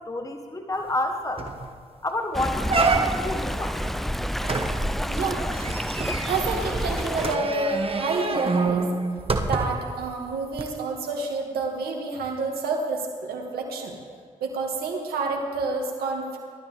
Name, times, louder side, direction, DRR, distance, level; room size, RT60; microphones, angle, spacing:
voice 1, 0.0-1.5 2.0-3.8, left 2 dB, 20° left, 5 dB, 1.2 m, -30 dB
sound 1, 0.9-1.0 1.4-1.7 2.1-2.2 2.7-3.4 4.4-9.9 10.5-10.6, right 3 dB, 35° right, 1.3 m, -27 dB
Stream, 2.3-7.4, equal, ahead, 0.5 m, -29 dB
voice 2, 5.1-5.5 6.3-8.9 9.4-14.0 14.4-16.4, right 3 dB, 75° right, 1 dB, 2.0 m, -29 dB
17.5 x 12.5 x 3.4 m, 2.2 s
hypercardioid pair, 40°, 16 cm